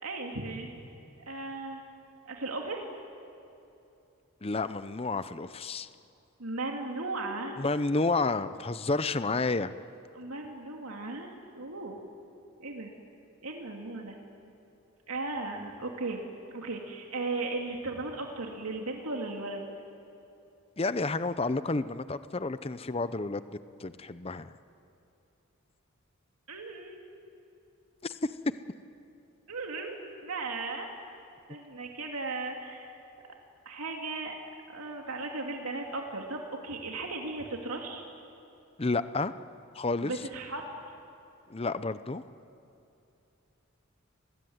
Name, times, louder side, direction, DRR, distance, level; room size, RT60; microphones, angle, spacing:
voice 1, 0.0-0.7 1.2-1.8 2.2-2.9 6.4-7.6 10.1-12.0 12.6-12.9 13.4-14.2 15.1-16.2 16.5-19.6 26.5-27.0 29.5-30.9 31.5-32.9 33.7-34.3 34.7-38.0 40.0-40.6 40.9-41.0, right 3 dB, 85° right, 1 dB, 2.6 m, -36 dB
voice 2, 4.4-5.9 7.6-9.7 20.8-23.5 23.8-24.5 28.0-28.3 38.8-39.3 39.7-40.1 41.5-42.2, left 3 dB, 25° left, 13 dB, 0.6 m, -30 dB
29.5 x 21.0 x 9.5 m, 2.8 s
head